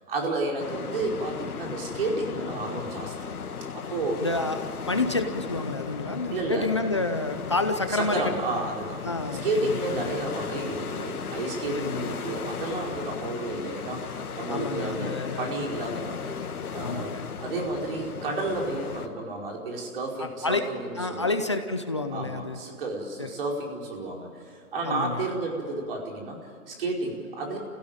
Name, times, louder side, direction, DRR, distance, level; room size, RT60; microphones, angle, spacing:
voice 1, 0.0-3.3 3.7-4.3 6.3-6.7 7.9-9.1 9.4-16.4 16.7-21.4 22.1-27.6, right 2 dB, 40° right, 0 dB, 4.9 m, -31 dB
sound 1, 0.6-19.1, left 6 dB, 80° left, 2.3 m, -36 dB
voice 2, 4.2-4.6 4.9-8.3 9.0-10.1 11.7-12.1 14.5-15.5 16.8-17.3 20.2-20.6 21.0-22.6 23.2-23.3 24.8-25.2, left 3 dB, 20° left, 7 dB, 0.6 m, -29 dB
28.0 x 16.5 x 9.0 m, 2.4 s
hypercardioid pair, 170°, 44 cm